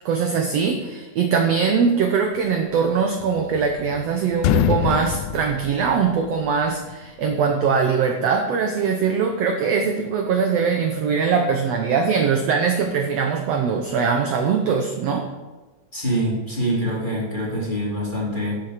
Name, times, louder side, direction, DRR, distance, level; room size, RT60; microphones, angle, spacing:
voice 1, 0.0-15.3, right 6 dB, 70° right, 4 dB, 1.6 m, -21 dB
sound 1, 3.2-4.0 4.3-6.5, left 10 dB, 80° left, 1.6 m, -24 dB
voice 2, 15.9-18.6, equal, 15° left, -5 dB, 2.6 m, -25 dB
12.0 x 7.3 x 5.0 m, 1.2 s
omnidirectional pair, 3.7 m